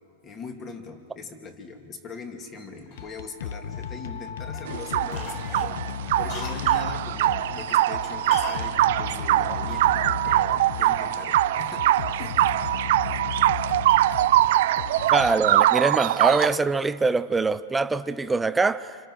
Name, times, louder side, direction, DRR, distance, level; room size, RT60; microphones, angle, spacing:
voice 1, 0.2-11.9 12.2-12.9, left 4 dB, 25° left, 2.7 m, -41 dB
sound 1, 2.9-16.1, left 7 dB, 75° left, 0.9 m, -35 dB
Cough, 2.9-4.2 4.5-4.8 5.1-6.9 8.3-8.7 8.9-9.0, left 3 dB, 45° left, 4.8 m, -39 dB
sound 2, 4.7-16.6, right 14 dB, 65° right, 0.6 m, -23 dB
voice 2, 15.1-19.0, right 3 dB, 10° right, 0.6 m, -23 dB
29.0 x 28.0 x 6.3 m
supercardioid pair, 150°, 0 cm